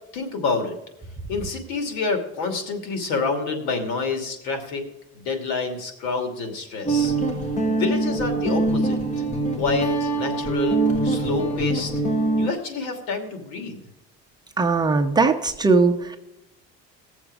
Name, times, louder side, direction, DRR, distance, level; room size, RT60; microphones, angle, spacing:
voice 1, 0.1-0.7 1.3-4.8 5.1-7.1 7.8-9.2 9.6-11.9 12.4-13.8, left 4 dB, 80° left, 5 dB, 2.8 m, -28 dB
Guitar, 6.8-12.5, right 3 dB, 25° left, 1.4 m, -23 dB
voice 2, 14.6-16.2, right 4 dB, 15° right, 4 dB, 0.7 m, -19 dB
19.0 x 7.1 x 4.9 m, 0.92 s
cardioid pair, 150°, 29 cm